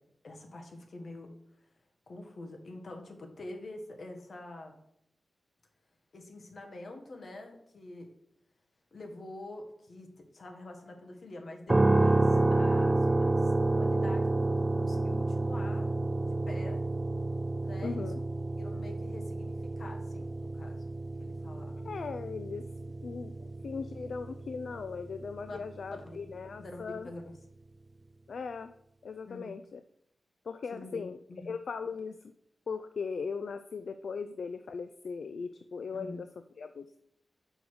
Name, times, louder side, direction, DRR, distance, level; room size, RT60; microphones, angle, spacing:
voice 1, 0.2-1.3 2.1-4.8 6.1-8.1 8.9-10.1 10.3-15.9 16.2-16.8 17.6-18.1 18.6-21.9 25.5-25.6 25.9-26.2 26.6-27.3 29.3-29.5 30.7-31.0 31.3-31.5 35.9-36.2, left 2 dB, 60° left, 3 dB, 1.3 m, -46 dB
sound 1, 11.7-25.7, right 2 dB, 20° right, 0.4 m, -29 dB
voice 2, 17.8-18.2 21.8-22.7 23.0-27.1 28.3-28.7 29.0-29.8 30.4-31.2 31.4-32.3 32.7-36.3 36.6-36.9, left 5 dB, 75° left, 10 dB, 0.3 m, -38 dB
5.3 x 4.7 x 6.3 m, 0.74 s
wide cardioid pair, 110°, 0 cm